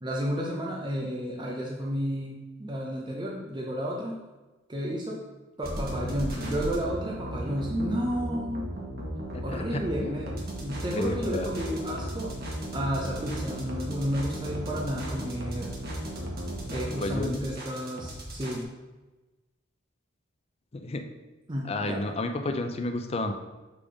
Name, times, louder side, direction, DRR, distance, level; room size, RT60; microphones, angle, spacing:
voice 1, 0.0-4.1 4.7-5.2 5.6-8.6 9.4-10.4 10.6-12.3 12.7-15.7 16.7-18.6 21.5-22.0, equal, 25° right, -3 dB, 0.7 m, -32 dB
sound 1, 5.6-18.6, equal, 50° right, 1.2 m, -35 dB
voice 2, 9.3-10.2 10.9-11.5 16.7-17.5 20.7-21.1 21.6-23.3, left 2 dB, 30° left, 6 dB, 0.5 m, -32 dB
6.7 x 3.6 x 5.1 m, 1.2 s
head